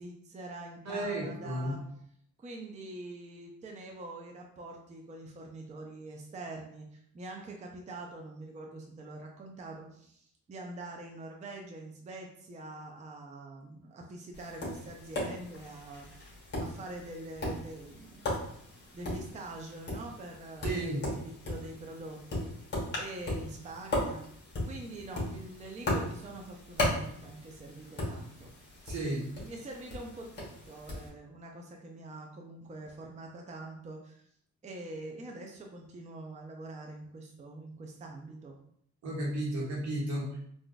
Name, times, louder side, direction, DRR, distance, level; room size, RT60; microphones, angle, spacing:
voice 1, 0.0-1.8 2.4-16.3 16.6-18.5 18.9-24.2 24.6-28.8 29.4-34.3 34.6-38.6, right 2 dB, 25° right, 1 dB, 0.5 m, -45 dB
voice 2, 0.8-1.7 20.6-21.0 28.9-29.2 39.0-40.4, right 1 dB, 65° right, -3 dB, 1.3 m, -33 dB
Tap, 14.3-31.1, left 1 dB, 35° left, 1.2 m, -37 dB
3.8 x 2.5 x 2.3 m, 0.68 s
cardioid pair, 90°, 30 cm